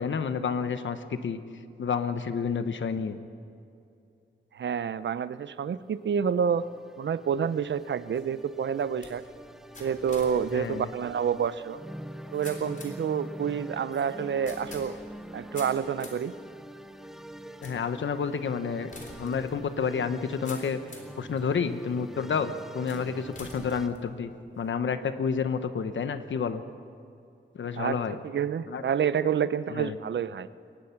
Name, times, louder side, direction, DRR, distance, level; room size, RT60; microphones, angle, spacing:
voice 1, 0.0-1.4 1.8-3.2 10.5-10.9 17.6-18.9 19.2-20.8 21.2-26.6 27.5-28.2 28.7-28.8 29.2-30.0, left 6 dB, 80° left, 10 dB, 1.0 m, -30 dB
voice 2, 4.5-6.7 7.0-9.2 9.8-11.8 12.3-15.0 15.3-16.3 27.8-28.0 28.2-30.5, right 7 dB, 70° right, 15 dB, 0.6 m, -28 dB
sound 1, 5.5-23.9, right 1 dB, ahead, 0.7 m, -44 dB
sound 2, 7.6-21.2 21.8-22.3 22.9-24.7, left 2 dB, 40° left, 3.7 m, -49 dB
23.0 x 19.5 x 5.9 m, 2.5 s
wide cardioid pair, 175°, 19 cm